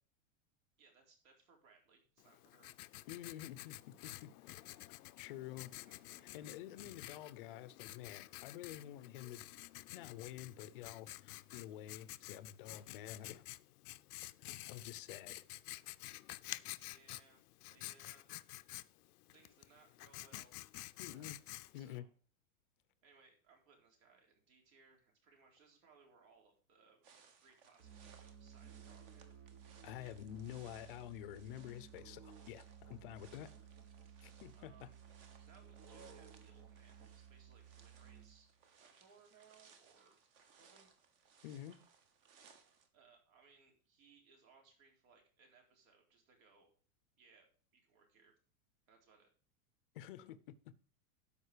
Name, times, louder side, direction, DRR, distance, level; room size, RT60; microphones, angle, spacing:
voice 1, 0.8-2.7 5.6-6.9 16.7-17.4 17.7-18.3 19.3-20.6 21.0-21.3 21.7-22.1 23.0-27.0 27.4-29.3 34.5-35.0 35.4-38.5 38.8-40.2 40.5-40.9 42.9-46.7 47.2-47.5 47.7-48.3 48.9-49.3, right 5 dB, 65° right, 4.1 m, -67 dB
Writing, 2.2-22.0, left 17 dB, 80° left, 0.6 m, -51 dB
voice 2, 3.1-4.6 5.2-5.7 6.2-9.5 9.9-13.4 14.4-15.4 21.0-21.4 21.7-22.0 29.8-33.5 34.2-34.9 41.4-41.8 49.9-50.6, left 12 dB, 35° left, 0.6 m, -49 dB
sound 1, 27.0-42.9, right 6 dB, 40° right, 1.3 m, -66 dB
Musical instrument, 27.8-38.6, right 8 dB, 20° right, 0.4 m, -57 dB
12.5 x 5.3 x 5.0 m
supercardioid pair, 175°, 45 cm